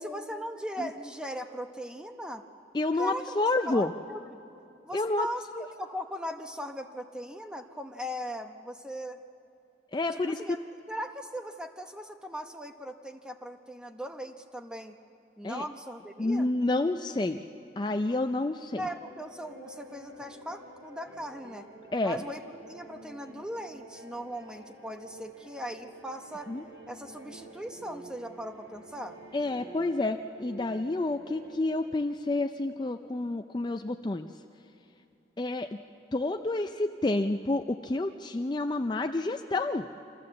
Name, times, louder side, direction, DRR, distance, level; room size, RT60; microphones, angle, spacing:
voice 1, 0.0-2.4 3.0-3.3 3.6-4.4 4.8-5.4 5.8-9.2 10.1-10.6 10.9-14.9 15.4-16.5 18.8-21.7 22.0-22.4 22.7-26.5 26.9-29.2, equal, 5° right, 5 dB, 0.8 m, -39 dB
voice 2, 2.7-3.9 4.9-5.3 5.5-5.6 9.9-10.6 15.4-15.6 16.2-17.4 17.8-18.8 21.9-22.2 26.5-26.6 29.3-34.3 35.4-35.7 36.1-39.9, left 2 dB, 25° left, 6 dB, 0.4 m, -29 dB
sound 1, 18.7-31.6, right 2 dB, 70° right, 5.6 m, -49 dB
26.5 x 14.5 x 7.6 m, 2.8 s
head